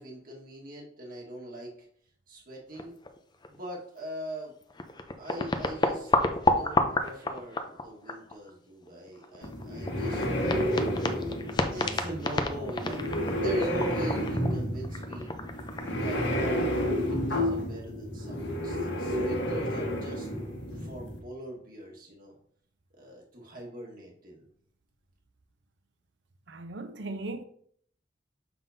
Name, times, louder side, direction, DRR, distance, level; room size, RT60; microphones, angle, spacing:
voice 1, 0.0-1.7 2.3-3.0 3.5-4.6 5.2-6.1 6.4-10.3 11.5-15.3 15.9-16.2 17.0-20.3 20.7-22.4 23.0-24.5, right 1 dB, 50° right, 1.6 m, -41 dB
sound 1, 2.8-3.2 3.4-3.6 4.4-4.5 4.7-8.5 8.9-16.5, left 3 dB, 25° left, 0.5 m, -30 dB
sound 2, 9.4-21.2, equal, 75° left, 1.4 m, -31 dB
voice 2, 26.5-27.4, right 2 dB, 80° right, 0.7 m, -37 dB
7.0 x 5.6 x 2.7 m
head